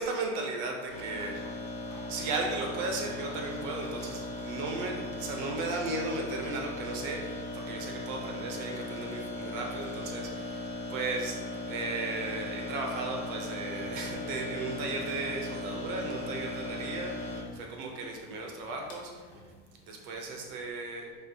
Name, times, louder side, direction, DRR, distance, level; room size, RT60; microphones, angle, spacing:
voice 1, 0.0-1.3 2.1-19.3 19.8-21.2, right 3 dB, 45° right, 1 dB, 0.7 m, -36 dB
sound 1, 0.9-20.5, left 2 dB, 35° left, 0.9 m, -38 dB
4.3 x 2.8 x 2.7 m, 1.4 s
supercardioid pair, 145°, 37 cm